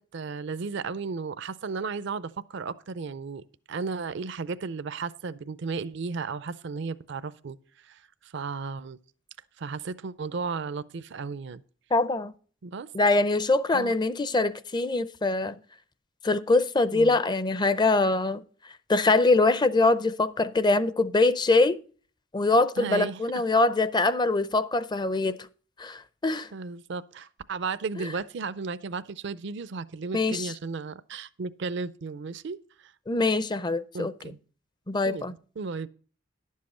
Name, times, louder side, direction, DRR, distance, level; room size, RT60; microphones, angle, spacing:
voice 1, 0.1-7.6 7.8-9.0 9.6-11.6 12.6-12.9 13.7-14.0 16.9-17.2 22.8-23.2 26.5-32.6 32.8-32.9 33.9-34.4 35.1-35.3 35.6-35.9, right 4 dB, 65° right, 0.5 m, -34 dB
voice 2, 11.9-12.3 12.9-15.6 16.2-18.4 18.9-21.8 22.3-25.4 25.8-26.5 28.0-28.1 30.1-30.5 33.1-34.1 34.9-35.3, left 3 dB, 20° left, 0.5 m, -23 dB
11.0 x 7.5 x 4.3 m
head